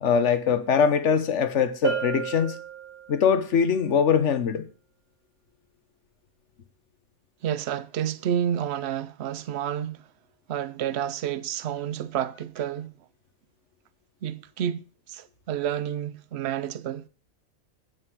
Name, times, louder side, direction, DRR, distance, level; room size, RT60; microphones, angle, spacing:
voice 1, 0.0-2.5 3.1-4.7, left 7 dB, 55° left, 1.3 m, -22 dB
Bell, 1.8-3.4, right 8 dB, 75° right, 2.6 m, -31 dB
voice 2, 7.4-10.1 10.5-12.9 14.2-17.0, right 10 dB, 55° right, 0.9 m, -30 dB
8.8 x 7.7 x 6.1 m
omnidirectional pair, 1.5 m